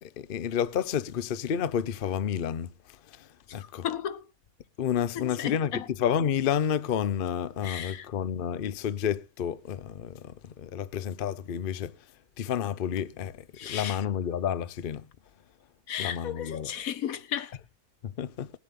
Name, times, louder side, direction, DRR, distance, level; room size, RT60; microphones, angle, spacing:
voice 1, 0.0-2.7 3.1-3.8 4.8-11.9 12.4-15.1 16.0-16.7 18.0-18.5, left 8 dB, 50° left, 0.7 m, -30 dB
voice 2, 3.5-4.2 5.1-5.8 7.6-8.1 13.6-14.0 15.9-17.5, left 9 dB, 75° left, 1.3 m, -34 dB
20.0 x 8.4 x 3.8 m
omnidirectional pair, 1.5 m